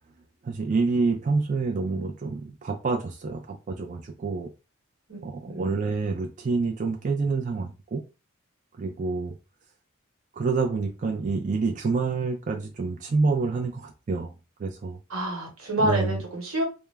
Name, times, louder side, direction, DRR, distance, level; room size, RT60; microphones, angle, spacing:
voice 1, 0.4-4.5 5.2-8.0 8.8-9.3 10.3-14.3 14.6-15.0 15.8-16.2, right 4 dB, 40° right, 0.3 m, -27 dB
voice 2, 15.1-16.6, right 1 dB, 90° right, 1.1 m, -28 dB
2.2 x 2.0 x 3.2 m
head